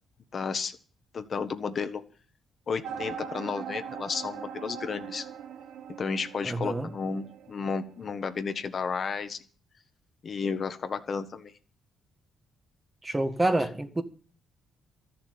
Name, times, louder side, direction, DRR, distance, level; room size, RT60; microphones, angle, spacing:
voice 1, 0.3-0.8 1.1-2.0 2.7-5.3 6.0-9.4 10.2-11.5, left 5 dB, 45° left, 1.5 m, -32 dB
sound 1, 2.8-8.4, right 7 dB, 80° right, 1.4 m, -41 dB
voice 2, 6.4-6.9 13.0-14.0, right 2 dB, 15° right, 1.6 m, -27 dB
13.5 x 7.1 x 9.7 m
cardioid pair, 90°, 0 cm